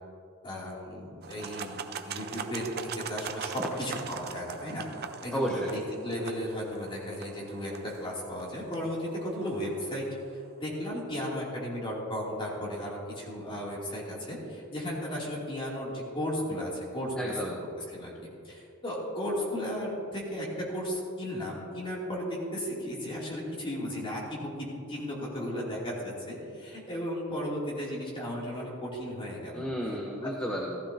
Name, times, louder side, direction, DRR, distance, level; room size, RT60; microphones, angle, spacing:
voice 1, 0.4-4.8 5.2-10.1 10.6-17.6 17.9-18.1 18.4-29.6 30.2-30.3, equal, 25° left, -5 dB, 2.8 m, -35 dB
sound 1, 1.2-10.3, right 6 dB, 45° right, 0.5 m, -42 dB
voice 2, 5.3-5.7 17.2-17.6 29.5-30.8, equal, 5° left, -2 dB, 0.9 m, -32 dB
15.5 x 14.0 x 2.8 m, 2.5 s
head